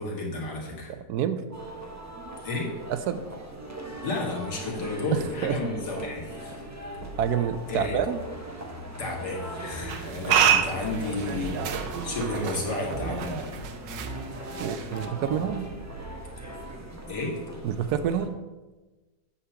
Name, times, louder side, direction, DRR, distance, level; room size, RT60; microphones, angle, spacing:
voice 1, 0.0-0.9 2.4-2.7 4.0-6.6 7.7-8.0 9.0-13.6 17.1-17.4, left 3 dB, 65° left, -1 dB, 2.4 m, -32 dB
voice 2, 0.9-1.4 2.9-3.2 5.1-5.6 7.2-8.2 14.6-15.7 17.6-18.4, right 9 dB, 70° right, 11 dB, 1.0 m, -28 dB
sound 1, 1.5-18.3, right 1 dB, 15° right, 0.6 m, -39 dB
sound 2, 9.9-15.5, right 8 dB, 85° right, 1.4 m, -29 dB
8.6 x 4.4 x 6.9 m, 1.2 s
omnidirectional pair, 1.9 m